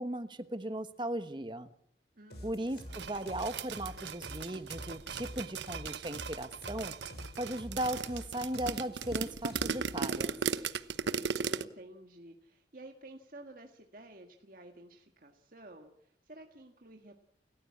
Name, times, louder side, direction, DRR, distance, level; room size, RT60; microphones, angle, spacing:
voice 1, 0.0-1.7 2.4-6.9 7.4-10.3, right 1 dB, 25° right, 11 dB, 1.2 m, -37 dB
voice 2, 2.2-3.0 11.1-17.1, right 1 dB, 50° right, 3 dB, 1.8 m, -52 dB
sound 1, 2.3-10.0, left 1 dB, 65° left, 6.6 m, -47 dB
sound 2, 2.9-11.6, right 5 dB, 85° right, 1.0 m, -36 dB
29.5 x 14.5 x 8.6 m, 0.73 s
head